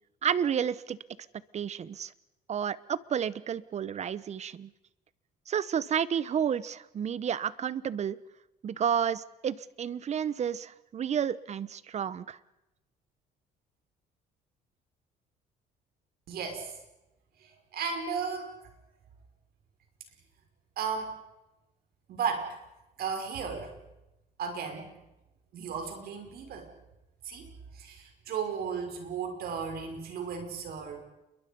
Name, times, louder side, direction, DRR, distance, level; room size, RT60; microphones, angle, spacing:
voice 1, 0.2-1.0 1.5-2.1 2.5-4.7 5.5-8.2 8.6-12.4, right 8 dB, 40° right, 18 dB, 1.0 m, -31 dB
voice 2, 16.3-16.8 17.4-18.5 20.8-21.2 22.1-22.6 23.0-23.7 24.4-24.9 25.5-26.7 27.2-27.5 27.7-31.1, right 6 dB, 65° right, 4 dB, 5.9 m, -35 dB
29.5 x 23.0 x 5.4 m, 0.96 s
cardioid pair, 110°, 17 cm